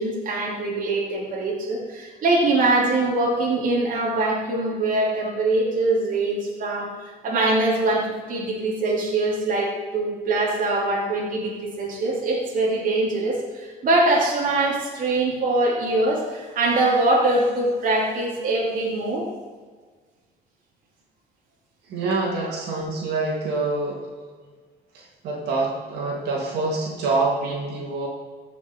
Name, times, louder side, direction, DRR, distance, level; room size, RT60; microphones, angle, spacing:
voice 1, 0.0-19.3 22.4-22.5, right 2 dB, 55° right, -3 dB, 2.6 m, -23 dB
voice 2, 21.9-24.4 24.9-28.1, right 3 dB, 75° right, -2 dB, 2.7 m, -26 dB
15.0 x 6.1 x 4.4 m, 1.5 s
cardioid pair, 110°, 17 cm